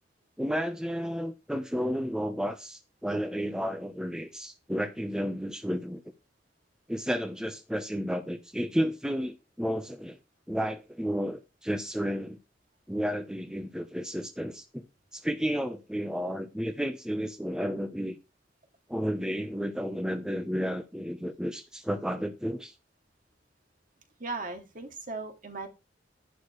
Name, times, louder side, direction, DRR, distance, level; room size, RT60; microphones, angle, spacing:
voice 1, 0.4-6.0 6.9-10.2 10.5-12.4 12.9-14.8 15.1-18.2 18.9-22.7, equal, 5° right, 0.9 m, -32 dB
voice 2, 24.2-25.7, right 3 dB, 50° right, 2.6 m, -37 dB
11.5 x 11.0 x 3.2 m
head